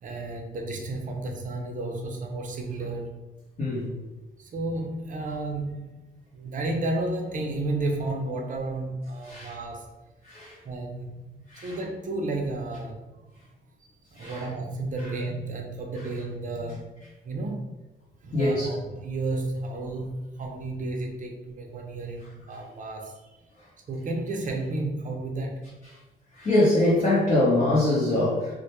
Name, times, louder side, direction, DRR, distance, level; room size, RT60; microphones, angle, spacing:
voice 1, 0.0-3.3 4.4-6.0 6.3-10.0 10.6-11.1 11.6-13.2 14.1-16.9 17.2-17.7 18.2-23.3 23.9-25.7, right 2 dB, 40° right, 2 dB, 0.5 m, -32 dB
voice 2, 3.6-3.9 9.2-9.5 10.2-10.5 11.5-11.8 14.2-14.5 18.3-18.7 26.3-28.5, left 1 dB, 40° left, -8 dB, 0.8 m, -23 dB
2.1 x 2.1 x 2.9 m, 1.1 s
cardioid pair, 90°, 20 cm